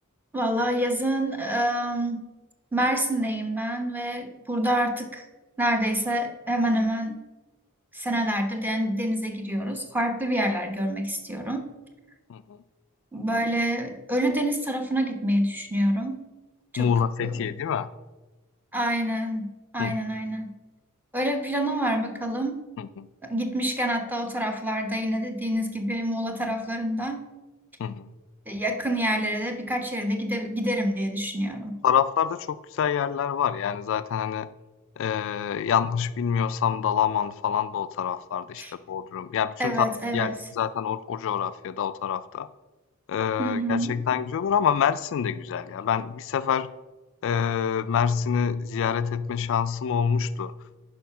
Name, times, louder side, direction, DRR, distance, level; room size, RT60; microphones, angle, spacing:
voice 1, 0.3-2.3 2.7-5.3 5.6-7.2 7.9-11.7 13.1-16.2 16.7-16.9 17.2-17.5 18.7-20.5 21.1-22.6 23.2-27.2 28.5-31.8 38.6-38.7 39.6-40.3 43.4-44.0, right 1 dB, 10° right, 5 dB, 0.9 m, -27 dB
voice 2, 16.8-17.9 19.8-20.0 22.8-23.1 27.8-28.1 31.8-34.5 35.0-39.9 40.1-42.5 43.1-46.7 47.2-50.5, left 7 dB, 60° left, 13 dB, 0.3 m, -26 dB
10.0 x 5.0 x 5.8 m, 1.2 s
head